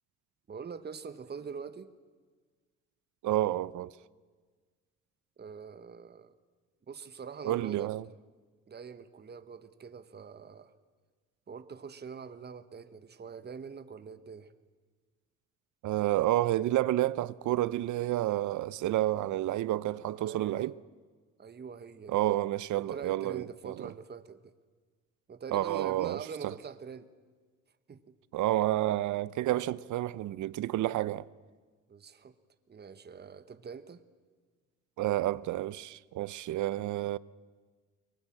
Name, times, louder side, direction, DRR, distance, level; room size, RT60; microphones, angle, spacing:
voice 1, 0.5-1.9 5.4-6.3 6.9-7.9 8.7-10.7 11.5-14.5 20.2-20.7 21.4-22.2 22.8-24.5 25.3-27.1 27.9-28.0 31.9-32.3 32.7-34.0, right 6 dB, 35° right, 1.2 m, -44 dB
voice 2, 3.2-3.9 7.4-8.1 15.8-20.8 22.1-23.9 25.5-26.6 28.3-31.3 35.0-37.2, right 15 dB, 75° right, 0.6 m, -30 dB
23.0 x 20.0 x 8.7 m
cardioid pair, 90°, 30 cm